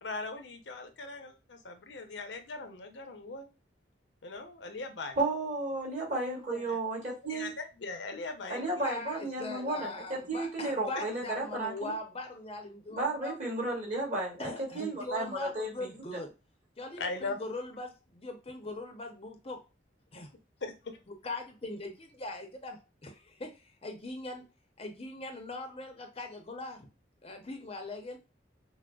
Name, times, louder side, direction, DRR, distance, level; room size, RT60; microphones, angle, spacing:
voice 1, 0.0-3.5 4.2-5.2 6.5-6.8 7.3-8.9 17.0-17.4 20.1-20.2 20.6-20.7, left 3 dB, 70° left, 6 dB, 0.7 m, -40 dB
voice 2, 5.2-7.5 8.5-11.9 12.9-16.2, right 2 dB, 40° right, -2 dB, 1.8 m, -33 dB
voice 3, 8.8-13.3 14.4-16.3 16.8-19.6 20.1-20.3 21.2-24.4 24.8-26.9 27.2-28.2, left 2 dB, 30° left, 4 dB, 0.7 m, -41 dB
6.0 x 2.1 x 2.3 m, 0.29 s
head